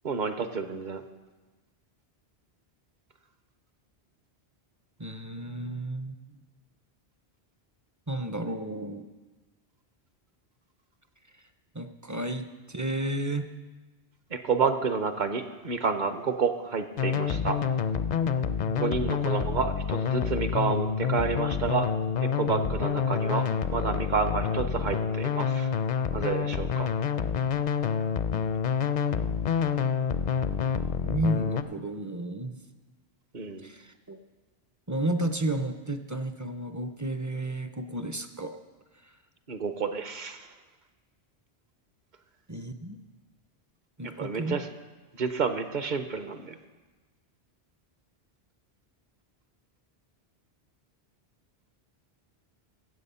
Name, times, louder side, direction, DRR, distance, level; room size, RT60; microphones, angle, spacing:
voice 1, 0.0-1.0 14.3-17.6 18.7-21.9 22.2-25.7 26.1-26.9 33.3-33.7 39.5-40.5 44.2-44.7 45.1-46.6, right 5 dB, 50° right, 9 dB, 0.9 m, -30 dB
voice 2, 5.0-6.2 8.1-9.1 11.7-13.5 18.7-19.1 31.0-32.6 33.6-34.2 34.9-38.6 39.0-39.1 42.5-43.0 44.0-44.6, right 1 dB, 25° right, 7 dB, 0.4 m, -32 dB
sound 1, 17.0-31.6, left 7 dB, 55° left, 0.5 m, -28 dB
15.5 x 7.8 x 5.5 m, 1.2 s
omnidirectional pair, 1.1 m